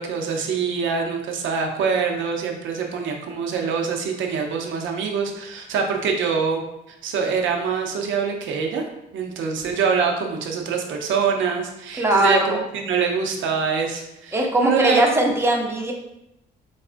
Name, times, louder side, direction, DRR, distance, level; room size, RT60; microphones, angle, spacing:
voice 1, 0.0-6.6 7.0-8.8 9.1-15.0, right 5 dB, 75° right, 2 dB, 0.6 m, -24 dB
voice 2, 12.0-12.6 14.3-15.9, right 1 dB, 10° right, 0 dB, 0.7 m, -20 dB
4.0 x 2.4 x 2.5 m, 0.87 s
cardioid pair, 90°, 20 cm